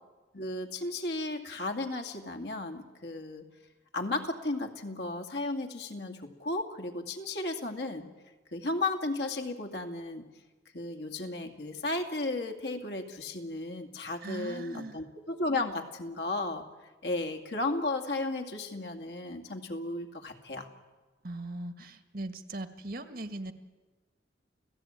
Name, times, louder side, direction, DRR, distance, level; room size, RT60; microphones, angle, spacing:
voice 1, 0.3-3.5 3.9-8.1 8.5-10.3 10.7-16.7 17.0-20.7, left 2 dB, 60° left, 3 dB, 2.4 m, -34 dB
voice 2, 14.2-15.0 21.2-23.5, right 1 dB, 50° right, 8 dB, 1.7 m, -39 dB
29.5 x 16.5 x 9.0 m, 1.3 s
head